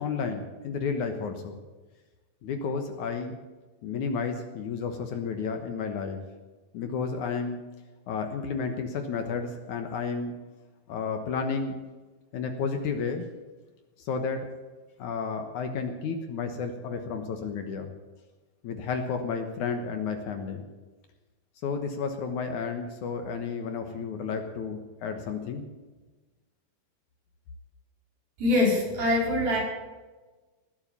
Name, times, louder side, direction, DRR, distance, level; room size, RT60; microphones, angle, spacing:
voice 1, 0.0-1.6 2.4-3.4 3.8-6.2 6.7-7.6 8.1-10.3 10.9-11.8 12.3-13.3 14.0-14.5 15.0-17.9 18.6-20.6 21.6-25.7, left 5 dB, 65° left, 6 dB, 2.4 m, -32 dB
voice 2, 28.4-29.6, left 2 dB, 70° right, -3 dB, 7.0 m, -23 dB
19.5 x 8.2 x 8.8 m, 1.2 s
omnidirectional pair, 4.3 m